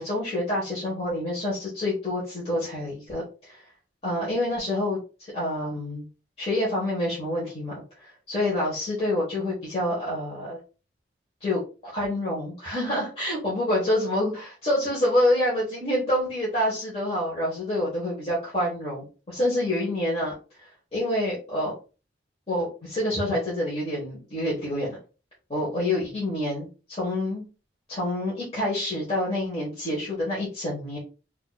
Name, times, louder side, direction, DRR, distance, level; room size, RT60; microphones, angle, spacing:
voice 1, 0.0-3.6 4.0-6.0 6.4-10.6 11.4-21.7 22.5-25.0 25.5-27.4 27.9-31.0, left 1 dB, 35° left, -7 dB, 1.3 m, -27 dB
4.5 x 2.8 x 2.3 m, 0.34 s
head